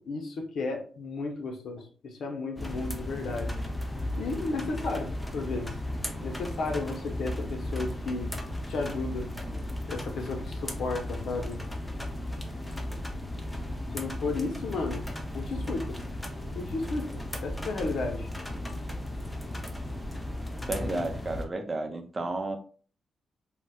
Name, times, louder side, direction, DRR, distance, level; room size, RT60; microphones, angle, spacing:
voice 1, 0.1-3.6 4.2-5.8 6.2-8.3 8.7-9.3 9.9-11.6 13.9-16.0 16.5-18.3 20.9-21.1, left 3 dB, 75° left, 0.7 m, -34 dB
sound 1, 2.6-21.5, left 1 dB, 15° left, 0.6 m, -35 dB
voice 2, 20.7-22.6, right 2 dB, 30° right, 0.6 m, -32 dB
3.9 x 2.1 x 2.3 m
cardioid pair, 75°, 0 cm